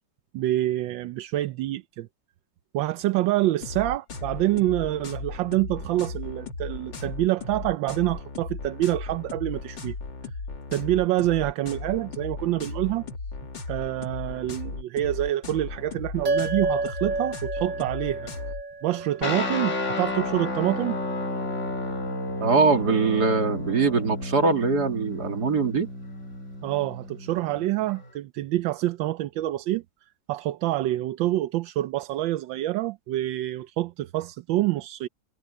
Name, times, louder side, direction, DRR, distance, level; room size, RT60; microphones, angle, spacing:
voice 1, 0.3-2.1 2.7-9.9 10.7-13.0 13.7-18.3 18.8-21.0 26.6-29.8 30.3-35.1, right 15 dB, 85° right, 1.4 m, -26 dB
sound 1, 3.6-18.6, left 3 dB, 75° left, 3.3 m, -36 dB
sound 2, 16.2-20.9, right 3 dB, 40° right, 3.2 m, -31 dB
sound 3, 19.2-28.1, left 2 dB, 40° left, 2.2 m, -32 dB
voice 2, 22.4-25.9, right 4 dB, 55° right, 3.1 m, -22 dB
omnidirectional pair, 2.0 m